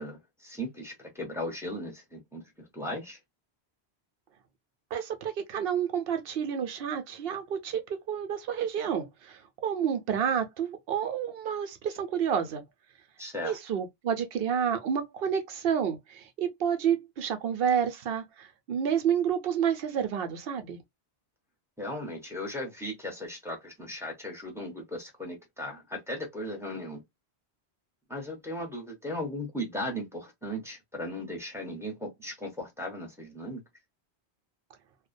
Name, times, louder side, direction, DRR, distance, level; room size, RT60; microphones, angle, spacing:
voice 1, 0.0-3.2 13.2-13.6 21.8-27.0 28.1-33.6, left 1 dB, 5° right, 0.7 m, -37 dB
voice 2, 4.9-12.6 13.4-20.8, right 8 dB, 65° right, 0.8 m, -29 dB
2.3 x 2.1 x 2.5 m
omnidirectional pair, 1.1 m